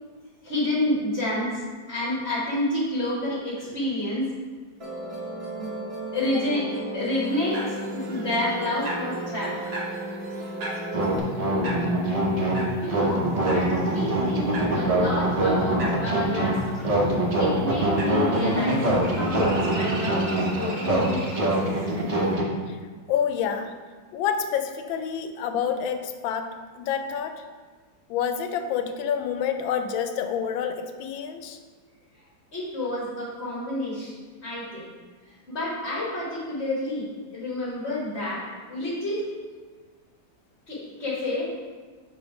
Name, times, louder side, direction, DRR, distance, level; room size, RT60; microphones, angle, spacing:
voice 1, 0.4-1.6 1.9-4.3 5.5-5.7 6.1-9.6 12.8-16.9 17.4-21.5 32.5-34.9 35.5-39.2 40.7-41.5, left 1 dB, 40° left, -8 dB, 1.5 m, -29 dB
Musical instrument, 4.8-11.2, right 1 dB, 30° right, 0.6 m, -34 dB
sound 1, 7.3-22.4, right 1 dB, 55° right, 1.2 m, -39 dB
sound 2, 10.9-22.4, right 1 dB, 70° right, 0.3 m, -24 dB
voice 2, 23.1-23.7 24.1-27.4 28.1-31.6, left 7 dB, 90° left, 7 dB, 1.3 m, -28 dB
7.2 x 3.2 x 4.6 m, 1.4 s
omnidirectional pair, 2.1 m